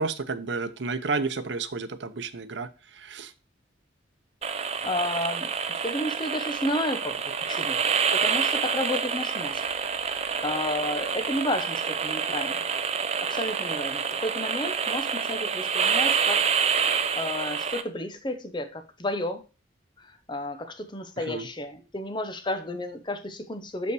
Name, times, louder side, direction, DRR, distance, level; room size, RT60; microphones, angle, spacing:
voice 1, 0.0-3.3 21.2-21.5, right 4 dB, 70° right, 11 dB, 0.7 m, -31 dB
sound 1, 4.4-17.8, right 6 dB, 35° right, 0.6 m, -27 dB
voice 2, 4.5-5.5 5.8-7.8 8.1-9.6 10.0-12.6 13.2-16.5 16.8-19.4 20.0-23.9, left 1 dB, 25° left, 8 dB, 0.8 m, -32 dB
6.5 x 5.6 x 4.7 m, 0.31 s
head